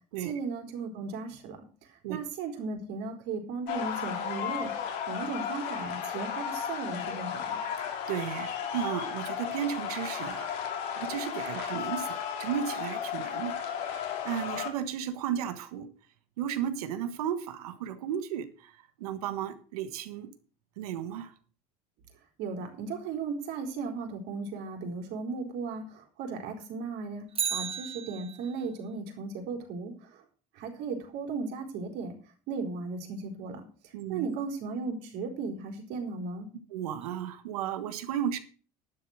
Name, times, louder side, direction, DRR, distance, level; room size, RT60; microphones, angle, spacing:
voice 1, 0.2-1.6 2.1-7.6 22.4-29.9 30.5-32.2 32.5-36.5, right 4 dB, 70° right, 4.1 m, -36 dB
sound 1, 3.7-14.7, left 8 dB, 70° left, 3.2 m, -34 dB
voice 2, 7.8-10.5 11.0-15.9 16.4-18.7 19.0-20.3 20.8-21.3 33.9-34.3 36.7-38.4, right 9 dB, 90° right, 1.5 m, -34 dB
Bicycle, 27.3-28.7 37.0-37.1, right 7 dB, 30° right, 1.6 m, -34 dB
11.5 x 7.4 x 6.5 m
supercardioid pair, 90°, 19 cm